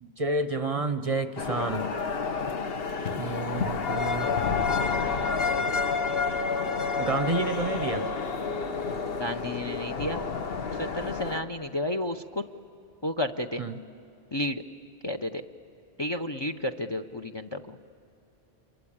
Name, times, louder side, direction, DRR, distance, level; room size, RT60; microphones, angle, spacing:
voice 1, 0.0-1.9 3.1-4.3 7.0-8.1 13.6-13.8, right 3 dB, 40° right, 11 dB, 0.7 m, -30 dB
sound 1, 1.4-11.4, left 5 dB, 60° left, 1.2 m, -29 dB
voice 2, 9.2-10.3 10.8-12.4 13.0-13.6 14.3-14.6 15.0-15.4 16.0-17.8, left 1 dB, 30° left, 8 dB, 0.5 m, -32 dB
28.0 x 23.5 x 8.6 m, 2.8 s
omnidirectional pair, 1.1 m